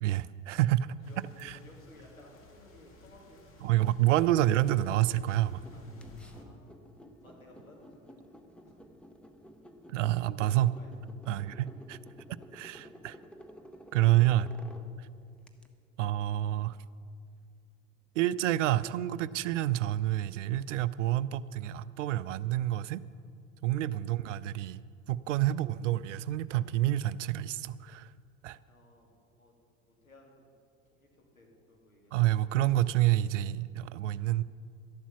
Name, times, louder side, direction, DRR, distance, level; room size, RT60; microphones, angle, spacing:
voice 1, 0.0-0.9 1.4-1.6 3.6-5.6 9.9-10.8 11.3-12.0 12.5-13.2 13.9-14.5 15.0-15.1 16.0-16.8 18.2-23.0 23.6-24.8 25.1-28.1 28.4-28.6 32.1-34.4, right 14 dB, 65° right, 17 dB, 0.5 m, -28 dB
sound 1, 1.0-6.4, left 3 dB, 30° left, 1.8 m, -55 dB
voice 2, 1.1-3.8 5.7-5.8 6.2-6.6 7.2-8.2 8.6-8.9 10.5-10.9 11.2-11.6 28.7-29.5 30.0-30.5 30.9-31.1 31.3-32.2, left 1 dB, 90° left, -1 dB, 2.5 m, -57 dB
sound 2, 5.6-15.7, equal, 5° left, 0.8 m, -52 dB
13.0 x 11.0 x 5.8 m, 2.4 s
figure-of-eight pair, 80°, 41 cm